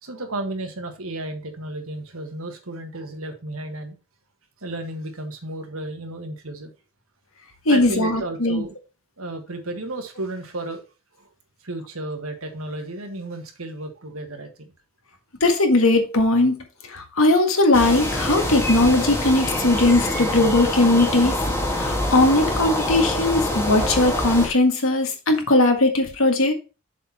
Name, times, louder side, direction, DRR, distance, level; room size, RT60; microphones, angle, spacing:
voice 1, 0.0-3.9 4.6-6.7 7.7-8.7 9.2-10.8 11.2-11.3 11.6-14.7, right 2 dB, 75° right, 1.7 m, -33 dB
voice 2, 7.7-8.6 15.4-21.4 21.7-26.5, left 2 dB, 70° left, 1.8 m, -19 dB
sound 1, 17.7-24.5, left 1 dB, 10° left, 1.6 m, -25 dB
7.2 x 4.3 x 5.6 m
head